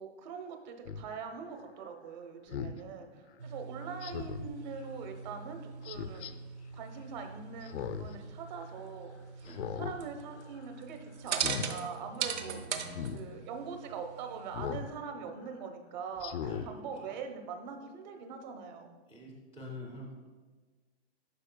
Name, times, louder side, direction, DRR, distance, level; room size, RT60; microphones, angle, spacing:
voice 1, 0.0-6.3 6.7-9.5 9.8-12.6 13.1-19.0, right 6 dB, 40° right, 5 dB, 0.9 m, -43 dB
Speech synthesizer, 0.9-1.0 2.5-2.8 4.0-4.5 5.8-6.3 7.6-8.1 8.5-8.6 9.5-10.0 10.4-10.7 11.3-11.7 12.9-13.2 14.5-14.9 15.4-15.5 16.2-16.7 17.1-17.2, left 7 dB, 80° left, 0.6 m, -38 dB
voice 2, 2.4-3.1 9.4-9.9 12.3-13.4 16.4-17.2 19.1-20.3, left 1 dB, 5° right, -3 dB, 0.5 m, -49 dB
sound 1, 3.4-14.8, right 6 dB, 85° right, 0.8 m, -41 dB
11.5 x 5.2 x 2.2 m, 1.3 s
hypercardioid pair, 155°, 33 cm